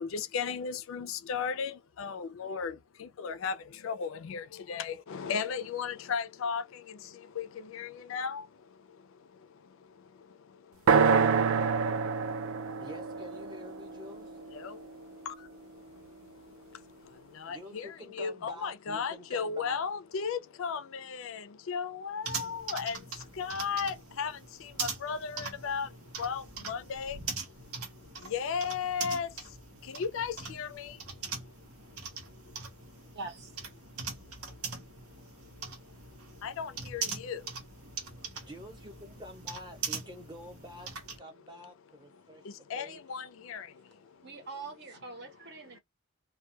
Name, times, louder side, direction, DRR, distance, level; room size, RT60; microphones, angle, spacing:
voice 1, 0.0-2.7 3.0-3.6 3.8-6.6 7.4-7.5 7.7-8.4 14.6-14.8 15.3-15.4 17.4-17.9 18.1-23.0 23.4-24.3 24.8-25.9 26.2-27.2 28.3-29.3 29.9-30.9 36.4-37.4 42.7-43.7, left 6 dB, 60° left, 0.3 m, -35 dB
sound 1, 10.9-14.8, right 5 dB, 65° right, 0.3 m, -27 dB
voice 2, 12.8-14.3 17.5-19.8 38.3-40.9 41.2-43.0, left 1 dB, 20° right, 0.8 m, -48 dB
sound 2, 22.2-41.2, right 5 dB, 80° right, 0.8 m, -41 dB
voice 3, 33.2-33.5 44.2-45.8, right 3 dB, 50° right, 0.9 m, -43 dB
2.2 x 2.2 x 2.7 m
head